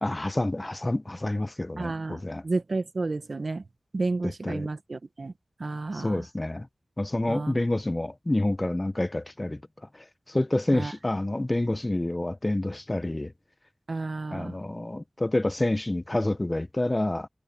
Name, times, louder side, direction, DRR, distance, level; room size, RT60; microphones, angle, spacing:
voice 1, 0.0-2.4 4.2-4.7 5.9-6.7 7.0-9.6 9.9-13.3 14.3-17.3, left 1 dB, 25° left, 0.7 m, -28 dB
voice 2, 1.8-3.6 3.9-5.3 5.6-6.3 7.3-7.6 10.7-10.9 13.9-14.6, right 3 dB, 65° right, 1.4 m, -31 dB
wide cardioid pair, 70°, 0 cm